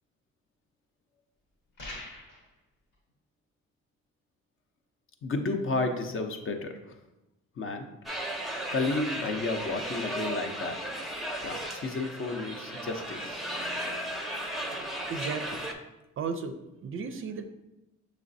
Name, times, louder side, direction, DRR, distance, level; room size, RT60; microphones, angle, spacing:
sound 1, 1.8-2.5, left 2 dB, 90° left, 1.5 m, -42 dB
voice 1, 5.2-7.0 7.6-7.9 8.7-10.9 11.4-13.5, left 3 dB, 45° left, 5 dB, 0.6 m, -32 dB
sound 2, 8.0-15.7, right 1 dB, ahead, 0.6 m, -35 dB
voice 2, 15.1-15.7 16.2-17.5, right 5 dB, 45° right, 8 dB, 0.4 m, -35 dB
6.2 x 3.2 x 2.6 m, 0.95 s
cardioid pair, 90°, 30 cm